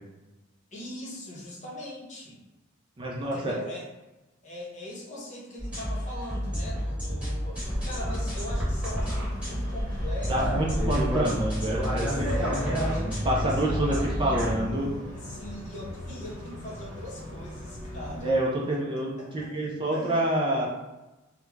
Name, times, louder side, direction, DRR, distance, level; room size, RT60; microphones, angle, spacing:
voice 1, 0.7-2.4 3.1-3.9 4.4-11.3 12.0-14.1 15.1-18.4 18.7-18.8 19.2-19.5 19.9-20.3, left 1 dB, 40° left, -4 dB, 0.7 m, -41 dB
voice 2, 3.0-3.5 10.3-12.8 13.2-14.9 18.2-20.7, right 1 dB, 25° right, -3 dB, 0.3 m, -27 dB
sound 1, 5.6-14.6, equal, 5° right, 1.1 m, -30 dB
sound 2, 7.6-18.3, equal, 65° right, 0.8 m, -36 dB
2.3 x 2.1 x 3.1 m, 1.1 s
head